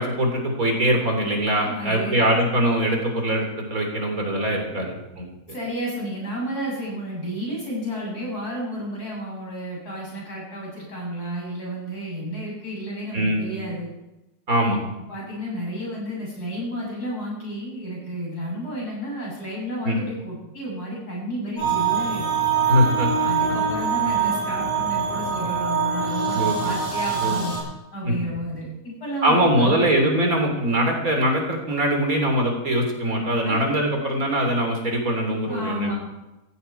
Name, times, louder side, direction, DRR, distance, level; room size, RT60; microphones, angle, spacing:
voice 1, 0.0-5.3 13.1-13.4 14.5-14.8 19.8-20.0 22.7-23.3 26.3-26.7 27.2-27.5 28.0-28.2 29.2-35.9, equal, 65° right, 2 dB, 3.9 m, -22 dB
voice 2, 1.6-2.2 4.7-4.8 5.5-13.9 15.1-22.4 23.2-27.5 27.9-30.0 33.4-33.7 35.5-35.9, equal, 90° left, -4 dB, 8.2 m, -31 dB
sound 1, 21.6-27.6, right 6 dB, 45° left, 7.4 m, -24 dB
16.5 x 15.5 x 4.6 m, 0.98 s
omnidirectional pair, 1.6 m